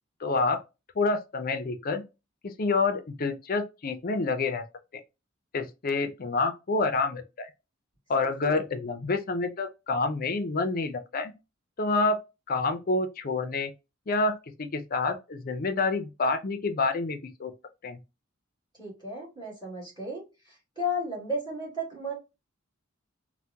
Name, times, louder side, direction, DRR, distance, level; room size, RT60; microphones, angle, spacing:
voice 1, 0.2-0.6 1.0-2.0 2.4-4.6 5.5-7.5 8.1-11.3 11.8-12.2 12.5-13.7 14.1-17.5 17.8-18.0, left 3 dB, 45° left, 0.5 m, -28 dB
voice 2, 18.8-22.1, left 1 dB, 20° right, 2.0 m, -34 dB
3.4 x 2.2 x 2.7 m
head